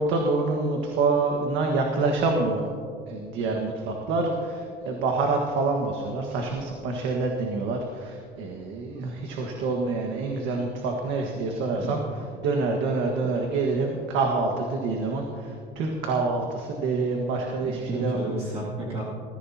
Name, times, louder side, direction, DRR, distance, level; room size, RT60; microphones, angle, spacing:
voice 1, 0.0-2.6 3.1-12.0 12.4-18.2, right 3 dB, 85° right, 1 dB, 1.5 m, -26 dB
voice 2, 17.6-19.0, right 1 dB, 30° right, -6 dB, 2.4 m, -31 dB
20.0 x 15.0 x 2.8 m, 2.3 s
cardioid pair, 165°, 19 cm